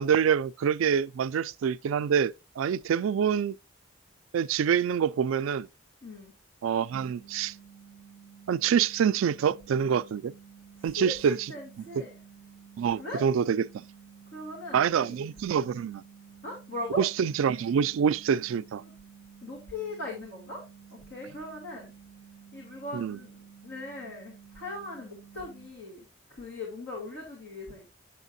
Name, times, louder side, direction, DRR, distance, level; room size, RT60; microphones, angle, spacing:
voice 1, 0.0-3.6 4.3-5.7 6.6-7.5 8.5-10.3 10.8-11.5 12.8-13.8 14.7-16.0 17.0-18.8 22.9-23.2, right 7 dB, 85° right, 0.3 m, -26 dB
voice 2, 6.0-6.3 10.9-12.2 13.0-13.2 14.3-15.1 16.4-17.0 18.8-18.9 19.4-20.6 20.9-21.9 22.5-27.9, left 2 dB, 65° left, 2.3 m, -39 dB
sound 1, 7.1-25.7, right 7 dB, 45° left, 4.8 m, -52 dB
8.1 x 7.0 x 2.6 m
head